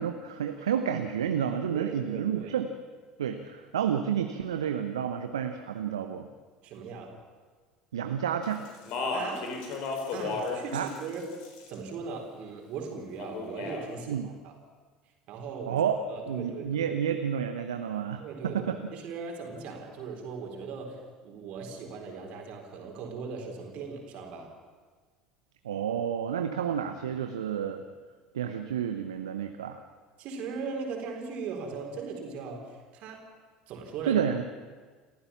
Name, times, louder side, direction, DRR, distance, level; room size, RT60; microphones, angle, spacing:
voice 1, 0.0-2.7 3.2-6.3 7.9-8.7 10.7-10.9 14.1-14.3 15.7-16.0 16.3-18.8 25.6-27.8 28.3-29.8 34.0-34.4, right 8 dB, 75° right, 7 dB, 1.0 m, -30 dB
voice 2, 1.7-2.5 6.6-7.1 9.1-9.5 10.1-11.3 11.7-14.5 15.3-15.8 16.1-17.0 18.2-24.5 30.2-33.3 33.7-34.2, right 5 dB, 50° right, 2 dB, 4.2 m, -39 dB
Speech, 8.6-10.6 10.9-11.7 13.2-13.8, left 3 dB, 55° left, 4.2 m, -33 dB
28.0 x 14.5 x 7.2 m, 1.5 s
figure-of-eight pair, 65°, 3 cm